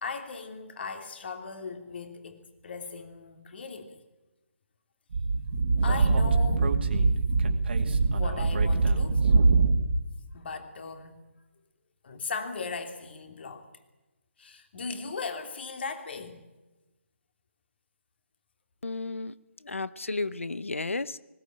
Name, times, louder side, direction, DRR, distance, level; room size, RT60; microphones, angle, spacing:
voice 1, 0.0-4.0 5.8-6.7 8.1-9.3 10.3-11.2 12.0-13.7 14.4-16.4, left 4 dB, 55° left, 6 dB, 2.9 m, -38 dB
Speech / Wind, 5.1-10.0, right 3 dB, 55° right, 2.3 m, -23 dB
voice 2, 18.8-19.3 19.6-21.2, left 3 dB, 90° left, 18 dB, 0.8 m, -33 dB
20.0 x 18.0 x 9.0 m, 1.1 s
figure-of-eight pair, 150°, 7 cm